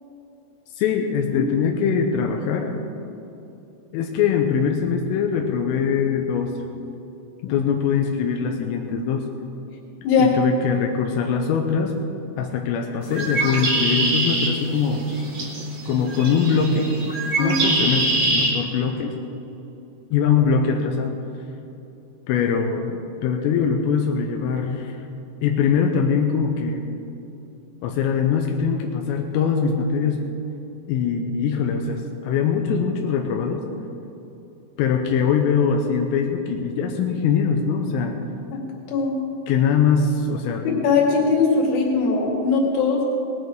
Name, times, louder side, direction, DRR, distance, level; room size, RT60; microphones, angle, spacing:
voice 1, 0.8-2.7 3.9-6.5 7.4-9.2 10.2-11.9 12.4-15.0 15.9-16.9 17.4-19.2 20.1-21.2 22.3-25.0 25.4-26.8 27.8-30.2 30.9-33.6 34.8-38.2 39.5-40.6, left 6 dB, 85° left, 3 dB, 3.4 m, -22 dB
Bird, 13.0-18.5, right 1 dB, 45° right, 2.8 m, -24 dB
voice 2, 40.8-43.0, left 4 dB, 55° left, -2 dB, 3.5 m, -20 dB
19.0 x 10.5 x 4.7 m, 2.8 s
omnidirectional pair, 5.8 m